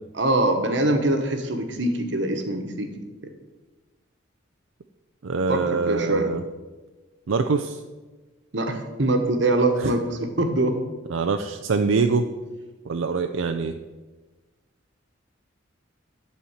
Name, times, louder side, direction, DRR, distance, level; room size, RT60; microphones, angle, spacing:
voice 1, 0.1-2.9 5.5-6.3 8.5-10.8, right 2 dB, 65° right, 5 dB, 1.3 m, -23 dB
voice 2, 5.2-6.4 7.3-7.8 9.8-9.9 11.1-12.3 12.9-13.8, right 4 dB, 85° right, 6 dB, 0.5 m, -24 dB
11.5 x 4.3 x 7.2 m, 1.2 s
head